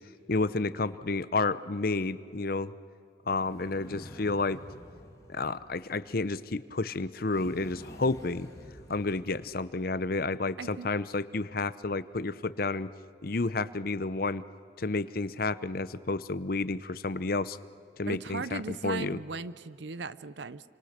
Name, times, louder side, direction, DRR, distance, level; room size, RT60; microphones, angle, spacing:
voice 1, 0.3-2.7 3.3-4.6 5.3-8.5 8.9-12.9 13.2-14.4 14.8-17.6 18.0-19.2, left 3 dB, 50° left, 15 dB, 0.8 m, -31 dB
sound 1, 3.3-6.4 7.3-10.0, equal, 20° left, 2.6 m, -49 dB
voice 2, 10.6-10.9 18.1-20.7, right 4 dB, 70° right, 16 dB, 0.7 m, -37 dB
29.0 x 25.5 x 6.7 m, 2.5 s
head